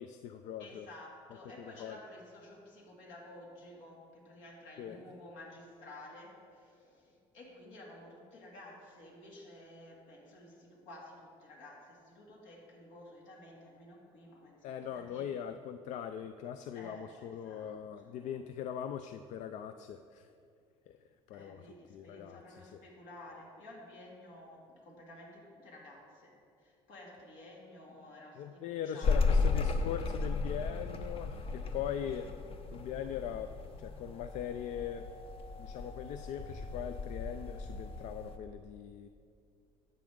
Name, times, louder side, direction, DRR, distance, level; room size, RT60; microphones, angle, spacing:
voice 1, 0.0-0.9 1.6-2.0 4.8-5.0 14.6-20.3 20.9-21.0 21.3-21.6 21.9-22.4 22.7-22.8 28.4-32.3 32.7-33.5 33.8-35.0 35.6-39.1, left 9 dB, 65° left, 10 dB, 0.4 m, -41 dB
voice 2, 0.6-15.3 16.7-18.4 21.3-29.5, left 1 dB, 80° left, -2 dB, 2.5 m, -53 dB
sound 1, 29.0-38.4, left 4 dB, 45° left, 0.9 m, -35 dB
12.5 x 7.8 x 3.7 m, 2.4 s
supercardioid pair, 95°, 13 cm